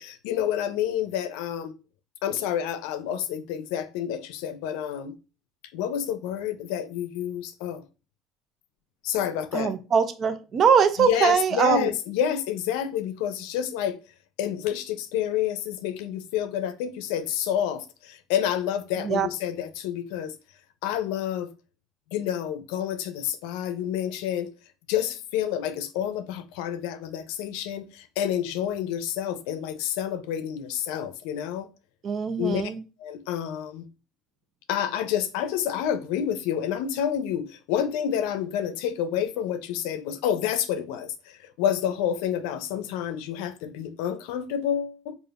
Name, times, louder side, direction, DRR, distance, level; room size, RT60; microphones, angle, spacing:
voice 1, 0.0-1.8 2.2-5.1 5.7-7.8 9.0-9.7 11.0-14.0 14.4-20.3 20.8-21.5 22.1-24.5 24.9-31.7 32.4-32.6 33.0-33.9 34.7-45.1, left 9 dB, 85° left, 0.5 m, -29 dB
voice 2, 9.5-11.9 19.0-19.3 32.0-32.8, right 7 dB, 35° right, 0.5 m, -22 dB
5.0 x 2.5 x 2.4 m
cardioid pair, 135°, 0 cm